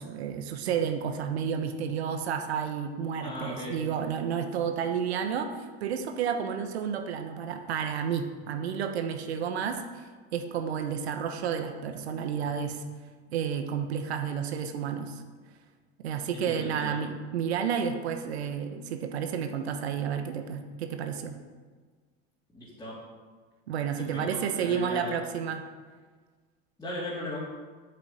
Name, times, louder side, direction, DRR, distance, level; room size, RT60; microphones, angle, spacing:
voice 1, 0.0-12.8 13.3-15.2 16.0-21.3 23.7-25.6, right 7 dB, 85° right, 6 dB, 1.2 m, -31 dB
voice 2, 3.2-3.8 16.3-16.9 22.5-23.0 24.0-25.1 26.8-27.5, left 1 dB, 10° left, -9 dB, 3.2 m, -37 dB
8.2 x 6.7 x 8.4 m, 1.5 s
supercardioid pair, 105°, 31 cm